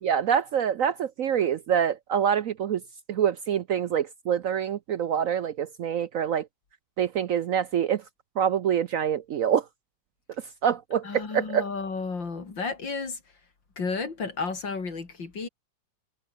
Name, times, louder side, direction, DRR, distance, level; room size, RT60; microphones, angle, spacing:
voice 1, 0.0-2.8 3.1-6.5 7.0-8.0 8.4-9.7 10.6-11.7, right 8 dB, 65° right, 0.9 m, -25 dB
voice 2, 11.0-13.2 13.8-15.5, left 4 dB, 85° left, 4.2 m, -32 dB
omnidirectional pair, 2.0 m